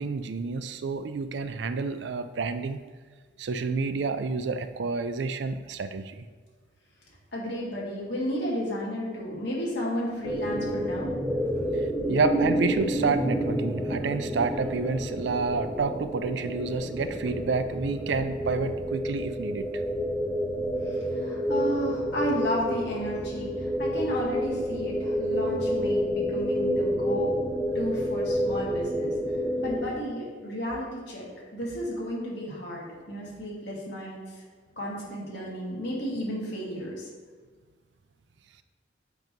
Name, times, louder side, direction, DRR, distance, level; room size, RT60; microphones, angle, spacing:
voice 1, 0.0-2.8 3.4-6.3 12.1-19.7, right 4 dB, 70° right, 10 dB, 0.4 m, -29 dB
voice 2, 7.3-11.2 11.5-11.7 12.0-12.2 20.8-27.3 27.7-29.2 29.6-31.3 31.5-34.4 34.8-37.1, equal, 65° left, -5 dB, 2.0 m, -33 dB
sound 1, 10.2-29.9, equal, 5° right, 0.7 m, -29 dB
7.8 x 3.0 x 5.2 m, 1.5 s
head